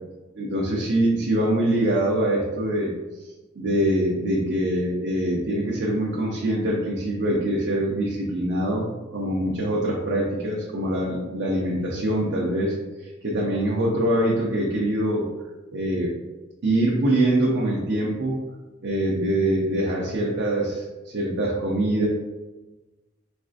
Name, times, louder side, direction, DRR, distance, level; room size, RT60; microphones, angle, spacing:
voice 1, 0.4-2.9 3.2-8.8 9.1-15.3 15.7-16.1 16.6-18.4 18.8-22.1, right 1 dB, 60° right, -4 dB, 0.5 m, -24 dB
4.1 x 2.5 x 2.4 m, 1.2 s
head